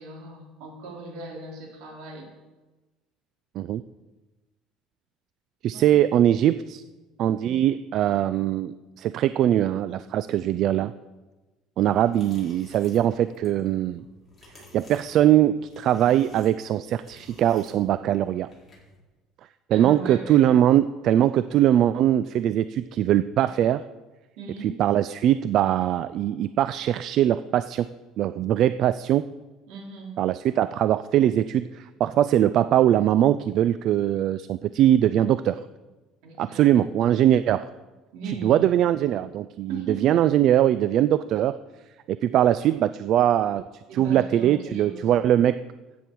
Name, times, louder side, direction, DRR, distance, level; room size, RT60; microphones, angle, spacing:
voice 1, 0.0-2.3 5.7-6.0 7.4-7.6 19.7-20.5 24.4-24.8 29.7-30.2 36.2-36.9 38.1-38.6 39.7-40.2 43.9-45.1, right 4 dB, 75° right, -1 dB, 3.6 m, -38 dB
voice 2, 5.6-6.8 7.2-10.9 11.8-14.0 14.6-18.5 19.7-23.9 24.6-27.9 28.2-29.2 30.2-35.6 36.4-37.7 38.3-41.6 42.1-45.6, right 11 dB, 55° right, 14 dB, 0.3 m, -21 dB
sound 1, 12.0-19.0, left 2 dB, 15° left, 4.4 m, -52 dB
13.0 x 9.1 x 4.6 m, 1.2 s
cardioid pair, 125°, 0 cm